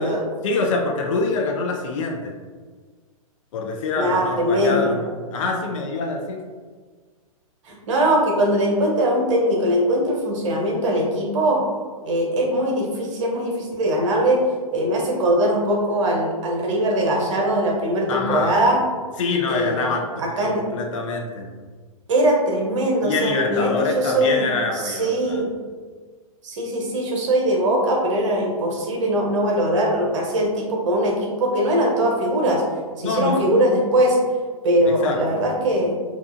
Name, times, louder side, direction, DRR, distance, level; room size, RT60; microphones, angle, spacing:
voice 1, 0.0-2.3 3.5-6.4 18.1-18.6 19.2-21.5 23.0-25.4 33.0-33.5 34.9-35.4, left 3 dB, 60° left, 1 dB, 0.5 m, -25 dB
voice 2, 4.0-4.9 7.6-11.6 12.0-14.4 14.7-18.8 19.5-19.9 20.2-20.6 22.1-24.5 24.7-25.5 26.4-32.6 33.0-34.2 34.6-36.0, right 1 dB, 55° right, -1 dB, 0.7 m, -21 dB
2.8 x 2.3 x 2.4 m, 1.5 s
hypercardioid pair, 115°, 18 cm